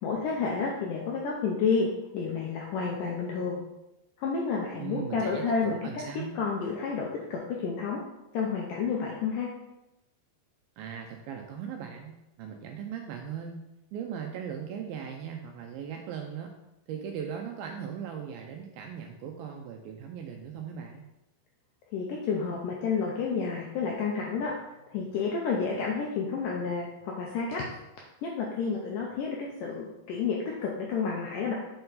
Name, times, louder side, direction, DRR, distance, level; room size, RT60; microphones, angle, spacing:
voice 1, 0.0-1.9 2.1-3.6 4.2-5.8 6.4-8.0 8.3-9.5 21.9-24.5 24.9-27.6 28.2-31.5, left 5 dB, 80° left, -2 dB, 1.9 m, -30 dB
voice 2, 4.8-6.3 10.8-13.6 13.9-16.5 16.9-21.1, right 7 dB, 80° right, 3 dB, 2.2 m, -38 dB
7.6 x 4.5 x 4.0 m, 0.94 s
omnidirectional pair, 4.7 m